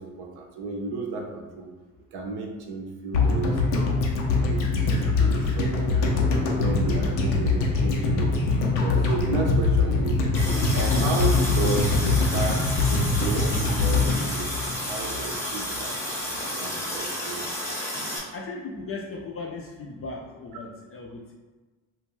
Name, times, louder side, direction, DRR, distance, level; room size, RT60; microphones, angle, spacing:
voice 1, 0.0-1.7 2.1-4.0 4.4-6.1 6.6-8.5 8.8-10.2 10.7-17.5, right 3 dB, 55° right, 1 dB, 0.7 m, -33 dB
sound 1, 3.1-15.3 15.6-15.7, left 3 dB, 85° left, 0.6 m, -23 dB
Water tap faucet, 10.3-18.2, left 1 dB, 5° left, 0.7 m, -31 dB
voice 2, 18.3-21.3, left 3 dB, 30° left, 0 dB, 0.4 m, -37 dB
2.4 x 2.2 x 3.0 m, 1.3 s
hypercardioid pair, 55°, 48 cm